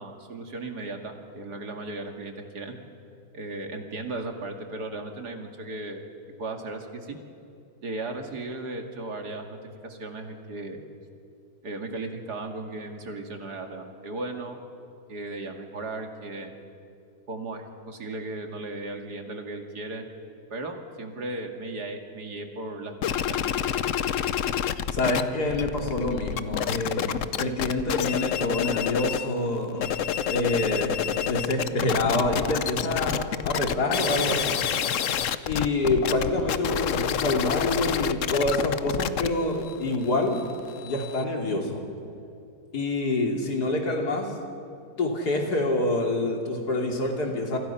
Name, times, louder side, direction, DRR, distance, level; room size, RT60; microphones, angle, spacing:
voice 1, 0.0-2.7 3.3-6.0 6.4-7.2 7.8-9.6 9.8-10.8 11.6-14.6 15.1-16.6 17.3-20.1 20.5-23.8, right 2 dB, 85° right, 3 dB, 2.8 m, -36 dB
sound 1, 23.0-25.2 25.5-29.3 29.7-41.2, left 9 dB, 60° left, 1.0 m, -28 dB
voice 2, 24.9-29.9 30.3-34.6 35.5-40.4 40.8-41.8 42.7-44.3 45.0-47.6, left 2 dB, 80° left, 1 dB, 3.4 m, -27 dB
28.5 x 25.0 x 5.8 m, 2.7 s
omnidirectional pair, 1.7 m